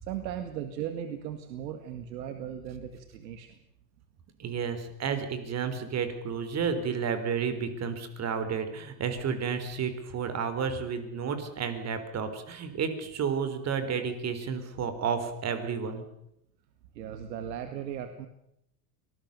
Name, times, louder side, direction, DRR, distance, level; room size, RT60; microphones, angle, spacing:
voice 1, 0.0-3.5 16.9-18.3, right 9 dB, 85° right, 8 dB, 2.2 m, -37 dB
voice 2, 4.4-16.0, right 6 dB, 30° right, 9 dB, 4.1 m, -31 dB
25.0 x 20.0 x 7.0 m, 0.80 s
supercardioid pair, 130°, 49 cm